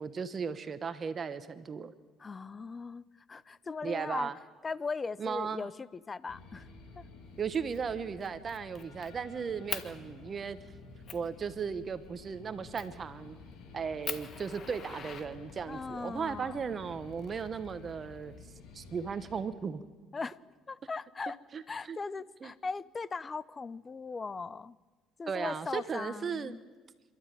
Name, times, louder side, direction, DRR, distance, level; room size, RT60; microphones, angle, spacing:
voice 1, 0.0-1.9 3.8-4.3 5.2-5.7 7.4-10.6 11.1-13.4 13.7-18.3 18.7-19.8 21.5-21.6 21.9-22.0 22.4-22.5 25.3-26.6, right 6 dB, 35° right, 1.0 m, -36 dB
voice 2, 2.2-4.3 4.6-6.7 7.0-7.1 15.7-16.7 20.1-20.4 20.7-21.4 21.7-24.8 25.2-26.6, left 4 dB, 25° left, 0.6 m, -39 dB
sound 1, 6.3-19.5, left 4 dB, 70° left, 3.3 m, -52 dB
Fire, 7.5-7.8 8.2-9.1 9.7-9.9 10.5-10.6 11.1-11.3 12.7-13.0 13.5-13.6 14.0-15.8 16.9-17.8, left 7 dB, 45° left, 1.6 m, -41 dB
27.5 x 12.5 x 9.2 m
cardioid pair, 105°, 0 cm